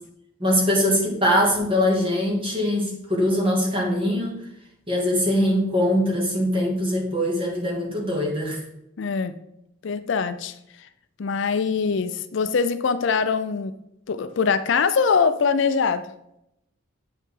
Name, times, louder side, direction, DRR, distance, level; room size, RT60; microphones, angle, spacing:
voice 1, 0.4-4.4 4.9-8.6, equal, 25° right, -2 dB, 2.0 m, -22 dB
voice 2, 9.0-9.3 9.8-10.9 11.2-13.7 14.1-16.1, left 5 dB, 60° left, 11 dB, 0.4 m, -23 dB
8.5 x 5.5 x 3.8 m, 0.81 s
head